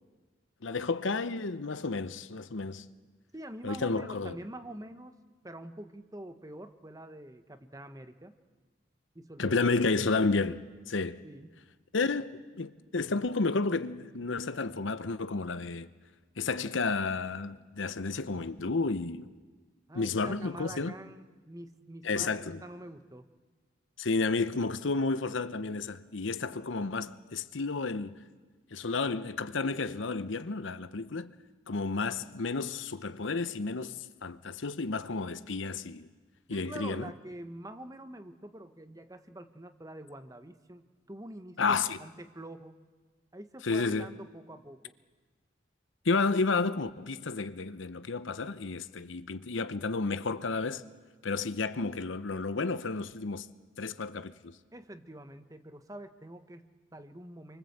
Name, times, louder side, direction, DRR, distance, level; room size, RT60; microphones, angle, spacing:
voice 1, 0.6-2.8 3.6-4.4 9.4-11.2 11.9-15.9 16.4-19.3 19.9-20.9 22.0-22.6 24.0-28.2 28.7-31.3 31.7-36.1 36.5-37.1 41.6-42.0 43.6-44.1 46.0-50.8 51.2-53.5 53.8-54.5, left 3 dB, 70° left, 0.8 m, -31 dB
voice 2, 3.3-5.2 5.4-8.3 9.1-9.7 11.2-11.5 19.9-23.3 36.5-42.8 43.3-44.9 54.7-57.6, right 1 dB, 15° right, 1.0 m, -46 dB
28.0 x 24.0 x 8.0 m
head